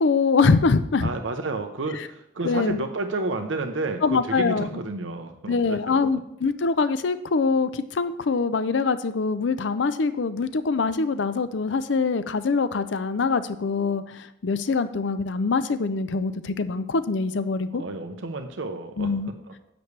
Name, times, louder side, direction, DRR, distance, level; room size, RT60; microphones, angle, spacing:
voice 1, 0.0-1.1 2.4-2.8 4.0-4.8 5.5-17.8 19.0-19.3, left 4 dB, 70° left, 13 dB, 0.5 m, -24 dB
voice 2, 1.0-6.0 17.7-19.1 19.5-19.6, right 2 dB, 80° right, 6 dB, 0.8 m, -31 dB
10.0 x 8.1 x 3.3 m, 0.79 s
head